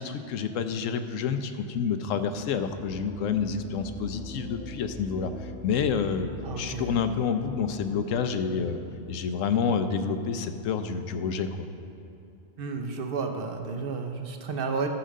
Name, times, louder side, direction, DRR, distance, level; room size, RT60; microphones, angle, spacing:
voice 1, 0.0-6.3 6.6-8.8 9.1-11.7, left 6 dB, 85° left, 9 dB, 1.0 m, -28 dB
sound 1, 2.3-9.5, left 1 dB, 5° left, 0.7 m, -44 dB
voice 2, 6.4-6.9 12.6-14.9, right 5 dB, 50° right, 5 dB, 0.9 m, -32 dB
13.0 x 5.0 x 6.5 m, 2.8 s
omnidirectional pair, 1.3 m